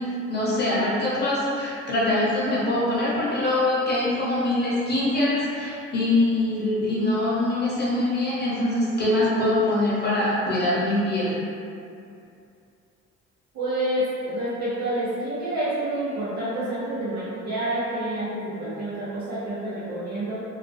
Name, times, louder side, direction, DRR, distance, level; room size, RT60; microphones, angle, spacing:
voice 1, 0.0-11.4, left 1 dB, 35° left, -8 dB, 0.9 m, -23 dB
voice 2, 13.5-20.4, right 1 dB, 65° right, -11 dB, 0.7 m, -28 dB
2.3 x 2.1 x 2.6 m, 2.5 s
cardioid pair, 90°, 30 cm